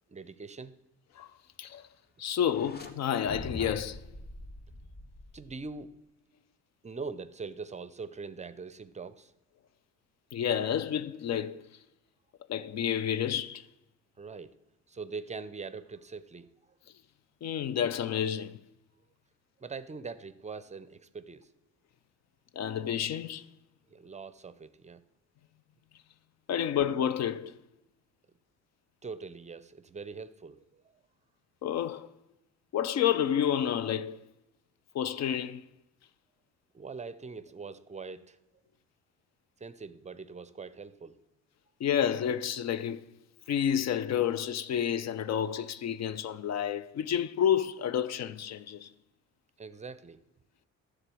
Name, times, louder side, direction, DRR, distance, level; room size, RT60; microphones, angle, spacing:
voice 1, 0.1-0.8 5.3-5.9 6.8-9.3 14.2-14.5 14.9-16.5 19.6-21.5 23.9-25.0 29.0-30.8 36.7-38.4 39.6-41.2 49.6-50.2, right 4 dB, 25° right, 0.5 m, -42 dB
voice 2, 2.2-4.0 10.3-11.6 12.5-13.7 17.4-18.6 22.6-23.5 26.5-27.5 31.6-32.1 32.7-34.2 34.9-35.6 41.8-43.1 43.5-48.9, left 9 dB, 60° left, 0.5 m, -30 dB
sound 1, 2.5-2.9 3.2-5.8, left 2 dB, 35° left, 1.0 m, -44 dB
11.0 x 3.8 x 7.6 m
cardioid pair, 90°, 30 cm